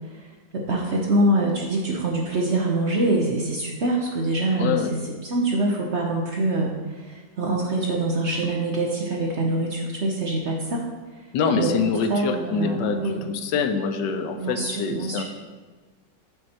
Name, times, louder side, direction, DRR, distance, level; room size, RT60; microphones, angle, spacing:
voice 1, 0.5-4.8 5.2-10.9 11.6-13.3 14.4-15.2, right 2 dB, 50° right, -1 dB, 0.9 m, -24 dB
voice 2, 4.6-4.9 11.3-15.2, left 5 dB, 80° left, 8 dB, 1.3 m, -25 dB
7.7 x 5.6 x 4.3 m, 1.3 s
omnidirectional pair, 1.9 m